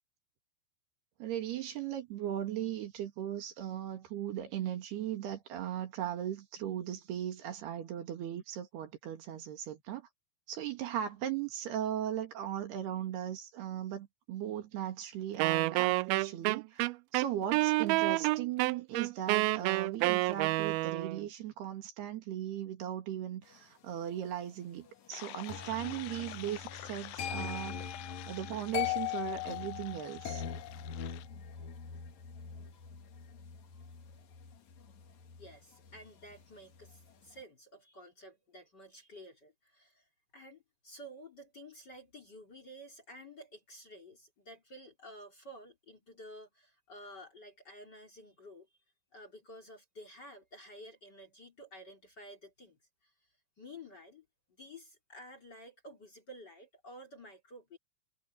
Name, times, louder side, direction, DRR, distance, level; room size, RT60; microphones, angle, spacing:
voice 1, 1.2-10.1 10.5-27.8 28.3-30.4, right 11 dB, 70° right, 4.0 m, -38 dB
Wind instrument woodwind instrument, 15.4-21.2, right 21 dB, 90° right, 2.1 m, -29 dB
sound 1, 25.1-31.3, left 18 dB, 85° left, 2.6 m, -48 dB
sound 2, 25.5-36.4 36.7-37.1, left 9 dB, 50° left, 2.7 m, -41 dB
voice 2, 35.4-40.1 40.3-48.7 49.1-53.3 53.6-57.8, equal, 25° left, 3.1 m, -52 dB
omnidirectional pair, 4.9 m